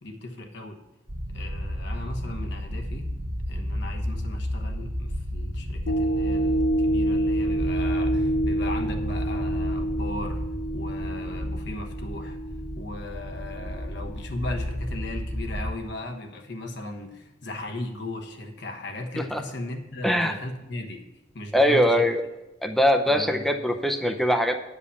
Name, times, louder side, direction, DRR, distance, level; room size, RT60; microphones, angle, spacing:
voice 1, 0.0-0.8 1.3-3.1 3.5-10.4 10.7-12.4 12.8-21.0 21.3-22.0 23.1-23.6, left 2 dB, 60° left, 4 dB, 1.3 m, -37 dB
sound 1, 1.1-15.7, equal, 70° right, 1.4 m, -32 dB
sound 2, 5.9-14.3 14.8-14.9, right 1 dB, 80° left, 0.9 m, -28 dB
voice 2, 21.5-22.2 22.6-24.6, equal, ahead, 5 dB, 0.6 m, -22 dB
9.8 x 5.2 x 6.9 m, 1.0 s
head